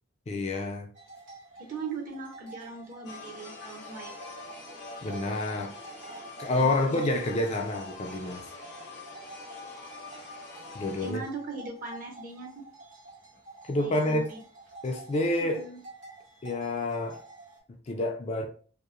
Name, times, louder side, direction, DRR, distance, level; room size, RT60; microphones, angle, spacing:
voice 1, 0.3-0.9 5.0-5.8 6.4-8.4 10.7-11.2 13.6-14.3 14.8-15.6 16.4-17.2 17.9-18.5, left 2 dB, 35° left, 3 dB, 0.4 m, -28 dB
sound 1, 0.9-17.6, right 3 dB, 90° right, 1.0 m, -49 dB
voice 2, 1.6-4.1 6.6-7.0 11.0-12.6 13.8-14.4 15.4-15.8, right 4 dB, 45° right, 1 dB, 0.6 m, -40 dB
sound 2, 3.0-11.1, left 4 dB, 60° left, 0.7 m, -45 dB
2.8 x 2.0 x 2.4 m, 0.42 s
head